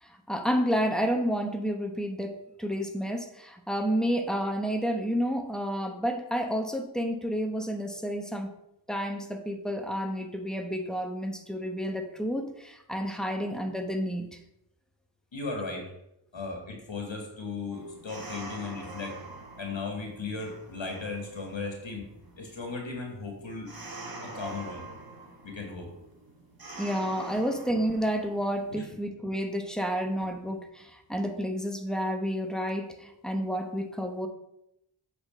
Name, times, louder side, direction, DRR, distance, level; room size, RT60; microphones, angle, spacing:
voice 1, 0.0-8.5 8.9-14.4 26.8-34.3, equal, ahead, 5 dB, 1.0 m, -30 dB
voice 2, 15.3-15.9 16.3-19.2 19.6-22.1 22.4-23.7 24.2-24.9 25.4-25.9 28.7-28.8, left 3 dB, 75° left, 2 dB, 1.6 m, -36 dB
sound 1, 17.7-28.8, right 2 dB, 50° right, 1.5 m, -45 dB
7.7 x 4.0 x 5.5 m, 0.81 s
wide cardioid pair, 45°, 45 cm